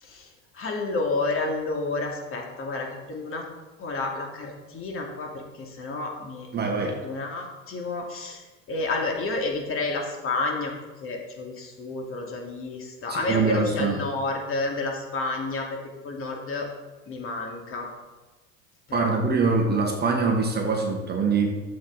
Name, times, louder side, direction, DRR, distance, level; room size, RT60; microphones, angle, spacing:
voice 1, 0.0-3.5 3.8-10.7 11.0-16.7 17.1-17.9 18.9-19.2, left 3 dB, 35° left, 1 dB, 2.6 m, -30 dB
voice 2, 6.5-7.0 13.1-14.0 18.9-21.5, right 4 dB, 25° right, 1 dB, 1.7 m, -23 dB
11.5 x 7.8 x 4.2 m, 1.2 s
hypercardioid pair, 100°, 38 cm